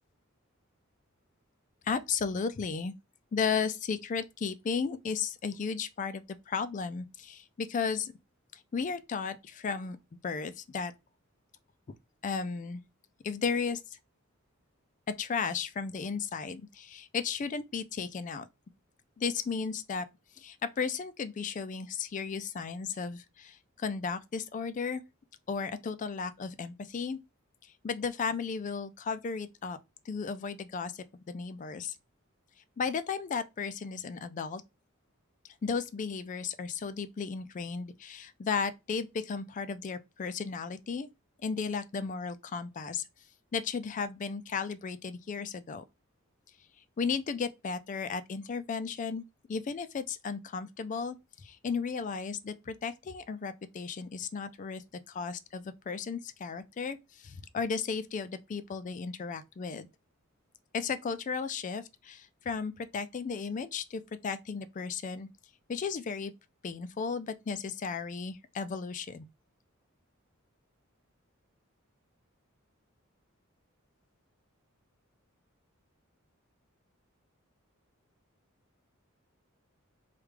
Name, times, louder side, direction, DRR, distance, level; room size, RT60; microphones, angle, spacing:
voice 1, 1.9-2.9 3.3-8.1 8.7-10.0 10.2-10.9 12.2-12.8 13.2-13.8 15.1-18.5 19.2-20.1 20.4-25.0 25.5-27.2 27.8-29.8 30.1-32.0 32.8-34.6 35.6-41.1 41.4-43.0 43.5-45.8 47.0-49.2 49.5-51.2 51.4-59.9 60.7-65.3 65.7-66.3 66.6-69.3, left 5 dB, 35° left, 0.3 m, -34 dB
3.3 x 2.3 x 3.3 m
head